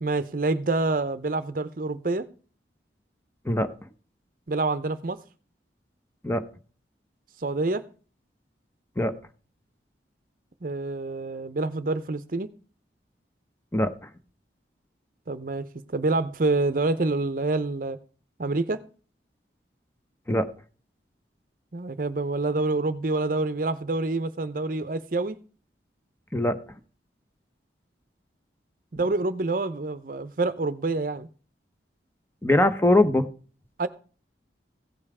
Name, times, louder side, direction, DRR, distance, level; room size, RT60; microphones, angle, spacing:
voice 1, 0.0-2.3 4.5-5.2 7.4-7.8 10.6-12.5 15.3-18.0 18.4-18.8 21.7-25.4 28.9-31.3 33.8-33.9, right 2 dB, 50° right, 0.7 m, -27 dB
voice 2, 13.7-14.1 20.3-20.5 26.3-26.6 32.4-33.3, left 1 dB, 15° left, 0.8 m, -22 dB
16.0 x 5.5 x 4.8 m
head